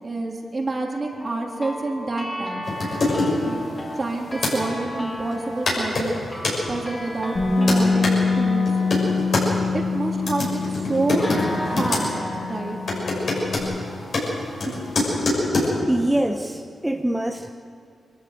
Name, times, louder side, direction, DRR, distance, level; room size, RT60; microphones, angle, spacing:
voice 1, 0.0-2.7 3.4-3.6 4.0-6.2 6.7-8.7 9.7-12.1 12.4-12.8, right 2 dB, 40° right, 0 dB, 3.4 m, -28 dB
sound 1, 1.2-10.4 11.2-14.1, equal, 25° left, 4.3 m, -35 dB
sound 2, 2.6-4.6 5.3-5.4 5.7-6.6 7.2-8.2 8.7-9.5 10.1-12.0 12.3-12.6 12.9-15.7, left 2 dB, 65° left, 6.8 m, -25 dB
Bass guitar, 7.4-13.6, left 4 dB, 45° left, 4.4 m, -25 dB
voice 2, 15.9-17.5, right 1 dB, 10° right, 3 dB, 1.0 m, -24 dB
23.0 x 14.0 x 8.0 m, 2.4 s
cardioid pair, 55°, 0 cm